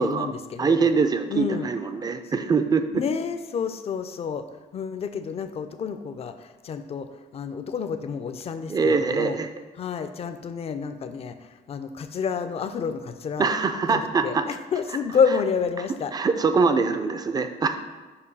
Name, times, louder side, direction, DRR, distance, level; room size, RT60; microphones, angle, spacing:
voice 1, 0.0-0.9 1.3-1.7 2.9-4.5 4.7-9.4 9.8-13.5 13.9-16.1, left 6 dB, 35° left, 9 dB, 0.4 m, -29 dB
voice 2, 0.6-3.0 8.7-9.5 13.4-14.5 16.1-17.8, right 5 dB, 25° right, 9 dB, 0.4 m, -23 dB
6.7 x 2.7 x 5.3 m, 1.3 s
cardioid pair, 110°, 17 cm